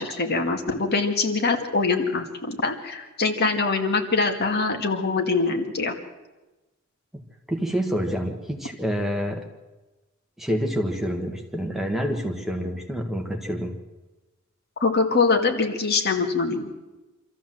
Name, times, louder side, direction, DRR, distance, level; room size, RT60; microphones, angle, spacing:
voice 1, 0.0-5.9 14.8-16.7, left 4 dB, 50° left, 4 dB, 2.1 m, -23 dB
voice 2, 7.5-9.5 10.4-13.8, equal, ahead, 2 dB, 1.6 m, -27 dB
25.5 x 14.0 x 7.7 m, 1.1 s
head